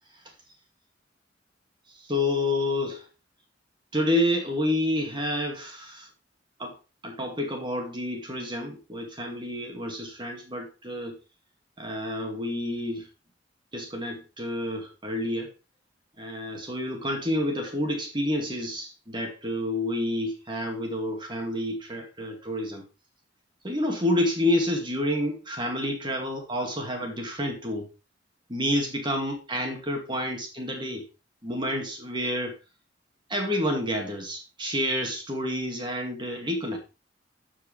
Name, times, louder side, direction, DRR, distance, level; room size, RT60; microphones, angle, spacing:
voice 1, 2.1-3.0 3.9-6.1 6.6-6.7 7.0-11.2 11.8-13.1 13.7-15.5 16.2-22.8 23.6-27.9 28.5-31.0 31.4-32.6 33.3-36.8, left 1 dB, 25° right, 2 dB, 2.3 m, -29 dB
14.0 x 5.0 x 3.3 m, 0.29 s
head